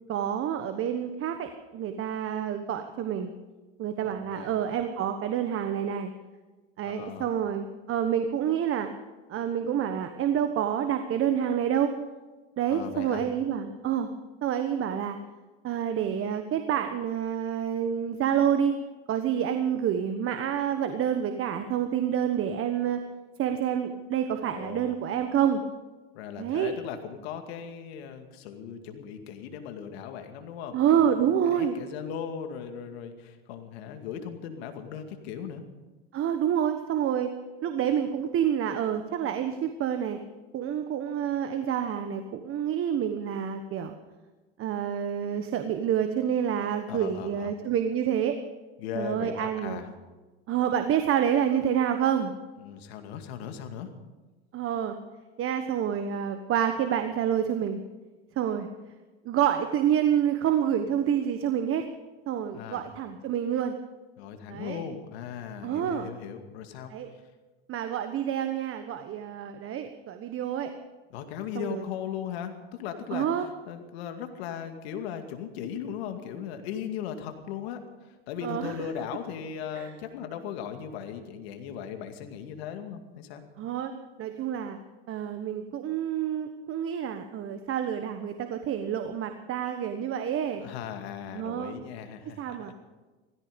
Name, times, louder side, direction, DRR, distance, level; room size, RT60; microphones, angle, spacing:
voice 1, 0.1-3.3 3.8-6.1 6.8-8.9 9.3-11.9 12.6-14.1 14.4-15.2 15.6-18.7 19.1-23.0 23.4-25.6 26.4-26.7 30.7-31.7 36.1-37.3 37.6-40.2 40.5-43.9 44.6-48.4 48.9-49.8 50.5-52.3 54.5-55.0 55.4-57.8 58.4-58.7 59.2-61.9 62.3-63.7 64.5-64.8 65.6-66.1 66.9-67.1 67.7-70.7 71.5-71.8 73.1-73.5 78.4-78.7 79.8-79.9 83.6-83.9 84.2-84.8 85.1-90.6 91.3-91.7 92.4-92.7, right 9 dB, 40° right, 7 dB, 1.3 m, -28 dB
voice 2, 4.0-4.5 6.8-7.3 12.7-13.2 24.5-25.0 26.1-35.6 46.9-47.5 48.8-49.9 52.6-53.9 62.5-62.8 64.2-66.9 71.1-83.4 90.6-92.7, left 8 dB, 70° left, 6 dB, 2.3 m, -38 dB
17.0 x 15.0 x 5.3 m, 1.2 s
hypercardioid pair, 95°, 32 cm